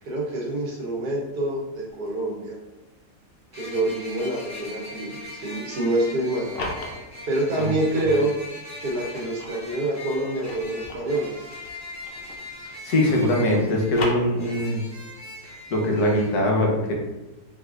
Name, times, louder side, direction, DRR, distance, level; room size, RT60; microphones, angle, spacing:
voice 1, 0.0-2.6 3.5-6.5 7.3-8.3 8.8-11.4, right 1 dB, 75° right, -3 dB, 1.6 m, -26 dB
sound 1, 3.5-16.3, left 1 dB, 15° left, 0.6 m, -40 dB
sound 2, 6.2-8.3 8.8-12.6 12.9-14.8, left 2 dB, 50° left, 0.7 m, -37 dB
voice 2, 12.8-14.8 15.7-16.9, left 1 dB, 75° left, -1 dB, 1.4 m, -22 dB
5.2 x 4.0 x 2.5 m, 1.1 s
omnidirectional pair, 1.7 m